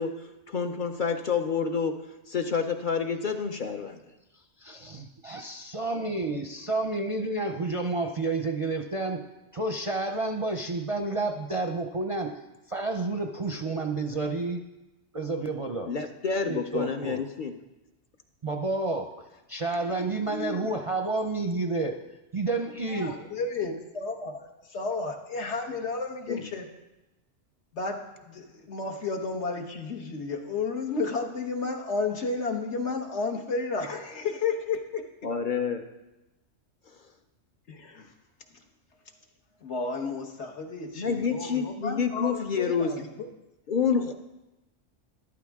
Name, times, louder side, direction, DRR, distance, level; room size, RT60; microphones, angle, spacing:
voice 1, 0.0-2.0 2.3-4.0 15.9-17.5 26.3-26.5 35.2-35.8 40.9-43.0 43.7-44.1, left 6 dB, 50° left, 5 dB, 0.8 m, -28 dB
voice 2, 4.3-9.2 9.5-12.4 12.7-14.6 15.1-15.9 16.4-17.2 18.4-22.0 22.3-23.3, right 2 dB, 35° right, 4 dB, 0.5 m, -30 dB
voice 3, 22.9-26.7 27.7-35.0 37.7-38.1 39.6-43.3, left 4 dB, 65° left, 3 dB, 1.4 m, -32 dB
13.5 x 11.5 x 3.6 m, 1.0 s
omnidirectional pair, 1.3 m